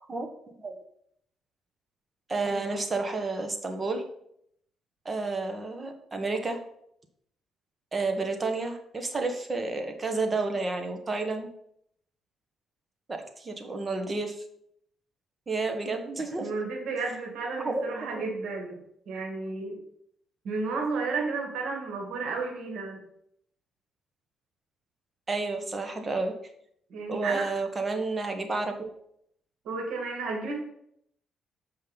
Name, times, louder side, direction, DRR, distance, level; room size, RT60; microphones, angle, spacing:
voice 1, 2.3-4.0 5.0-6.6 7.9-11.5 13.1-14.4 15.5-16.5 17.6-17.8 18.1-18.2 25.3-26.3 27.1-28.9, right 3 dB, 30° right, 5 dB, 1.4 m, -30 dB
voice 2, 16.4-18.8 19.1-19.8 20.4-23.0 26.9-27.5 29.6-30.6, right 4 dB, 80° right, 0 dB, 2.3 m, -32 dB
7.7 x 5.5 x 5.4 m, 0.72 s
cardioid pair, 90°, 0 cm